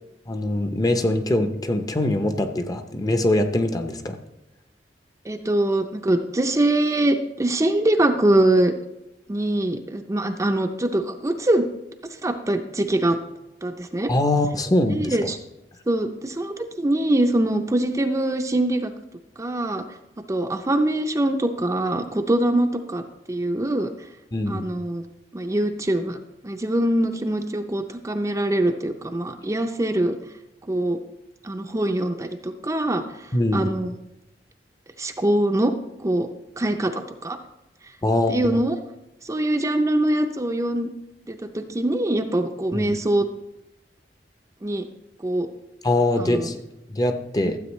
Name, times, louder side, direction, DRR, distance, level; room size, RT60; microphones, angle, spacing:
voice 1, 0.3-4.2 14.1-15.2 24.3-24.7 33.3-33.7 38.0-38.6 42.7-43.0 45.8-46.6 46.9-47.6, left 1 dB, 20° left, 8 dB, 0.6 m, -23 dB
voice 2, 5.2-8.7 9.3-11.7 12.2-13.2 13.6-14.1 14.9-15.4 15.9-18.9 19.4-19.8 20.3-23.9 24.5-25.0 25.3-26.2 26.4-30.2 30.7-31.0 31.4-33.9 35.0-35.7 36.0-36.3 36.6-37.4 38.3-38.8 39.2-40.9 41.3-43.3 44.6-44.9 45.2-45.5 46.2-46.5 47.4-47.5, right 1 dB, 20° right, 6 dB, 0.5 m, -23 dB
13.0 x 7.8 x 3.1 m, 0.91 s
head